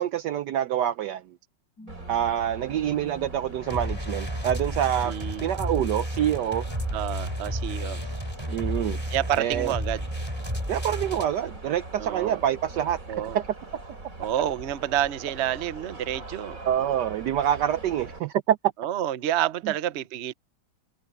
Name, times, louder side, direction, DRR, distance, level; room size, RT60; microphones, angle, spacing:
voice 1, 0.0-1.4 2.1-5.1 5.4-6.6 8.5-9.0 9.4-9.7 10.7-13.5 16.7-18.6 19.6-19.7, right 10 dB, 75° right, 1.0 m, -26 dB
sound 1, 1.8-12.2 12.6-12.7, left 2 dB, 50° left, 8.4 m, -50 dB
sound 2, 1.9-18.2, right 2 dB, 40° right, 4.7 m, -42 dB
sound 3, 3.6-11.3, equal, 10° right, 6.1 m, -32 dB
voice 2, 5.1-5.5 6.9-8.0 9.1-10.0 12.0-12.4 13.1-13.4 14.2-16.6 18.8-20.3, right 11 dB, 55° right, 0.7 m, -29 dB
omnidirectional pair, 2.2 m